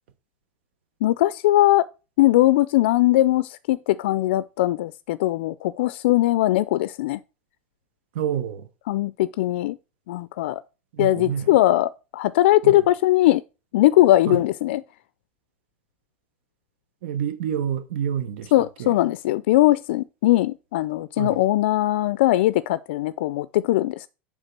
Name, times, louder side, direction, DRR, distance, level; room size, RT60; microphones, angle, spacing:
voice 1, 1.0-1.9 2.2-7.2 8.9-9.8 10.1-10.6 11.0-13.4 13.7-14.8 18.5-24.1, left 15 dB, 80° left, 0.3 m, -20 dB
voice 2, 8.1-8.7 10.9-11.6 12.6-12.8 14.3-14.4 17.0-18.9 21.2-21.4, right 9 dB, 80° right, 0.9 m, -28 dB
8.1 x 3.5 x 5.9 m
supercardioid pair, 175°, 6 cm